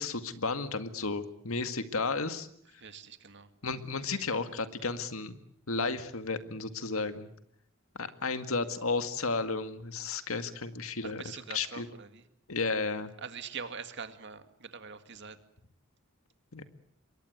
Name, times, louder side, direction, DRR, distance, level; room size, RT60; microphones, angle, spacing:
voice 1, 0.0-2.5 3.6-5.4 5.7-7.3 8.0-11.9 12.5-13.1 16.5-16.6, left 4 dB, 85° left, 9 dB, 2.0 m, -33 dB
voice 2, 2.8-3.5 11.0-12.2 13.2-15.4, right 6 dB, 60° right, 9 dB, 2.1 m, -43 dB
27.0 x 22.5 x 8.1 m, 0.69 s
head